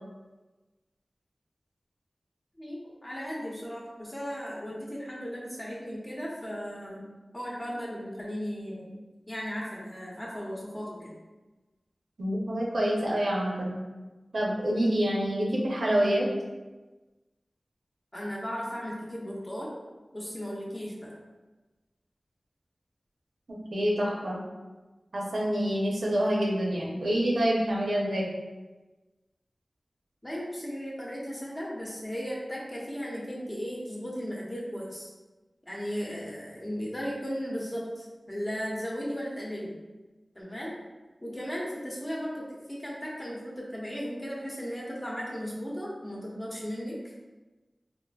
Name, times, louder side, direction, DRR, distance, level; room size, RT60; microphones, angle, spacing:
voice 1, 2.6-11.1 18.1-19.7 20.1-21.1 30.2-35.1 35.7-39.7 40.3-40.7 41.2-47.1, equal, 25° left, -4 dB, 0.8 m, -36 dB
voice 2, 12.2-13.7 14.3-16.3 23.5-24.4 25.1-28.3, equal, 80° right, -3 dB, 0.7 m, -27 dB
3.8 x 2.5 x 2.3 m, 1.2 s
wide cardioid pair, 75°, 0 cm